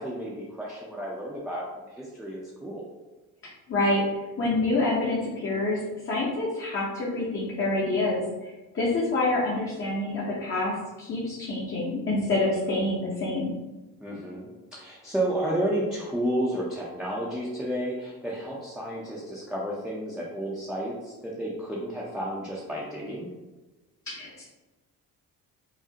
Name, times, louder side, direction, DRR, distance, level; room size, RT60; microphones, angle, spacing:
voice 1, 0.0-2.8 14.0-23.3, right 1 dB, ahead, -5 dB, 0.5 m, -32 dB
voice 2, 3.7-5.8 6.0-13.5 24.1-24.4, left 2 dB, 35° left, -6 dB, 0.8 m, -27 dB
4.9 x 2.0 x 2.8 m, 1.1 s
cardioid pair, 105°, 36 cm